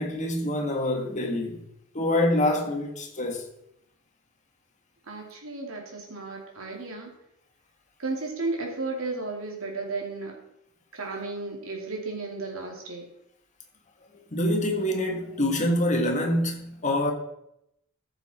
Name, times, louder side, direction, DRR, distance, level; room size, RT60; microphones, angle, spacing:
voice 1, 0.0-1.6 1.9-3.5 14.3-17.1, left 1 dB, 35° left, 1.7 m, -26 dB
voice 2, 5.1-7.1 8.0-10.3 10.9-13.1, right 3 dB, 75° right, 2.7 m, -34 dB
14.0 x 7.2 x 4.3 m
head